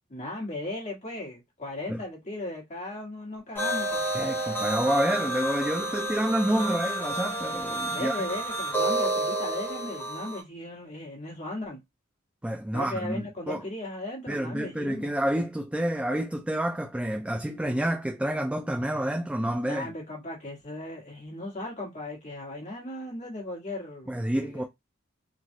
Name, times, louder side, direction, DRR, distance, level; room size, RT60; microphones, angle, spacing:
voice 1, 0.1-4.0 7.9-11.8 12.7-15.1 19.6-24.1 24.4-24.6, left 1 dB, 35° left, 1.4 m, -37 dB
sound 1, 3.6-10.4, right 1 dB, 10° left, 0.7 m, -30 dB
voice 2, 4.1-8.2 12.4-13.6 14.3-19.9 24.1-24.6, right 1 dB, 5° right, 0.3 m, -28 dB
3.2 x 2.3 x 2.6 m
head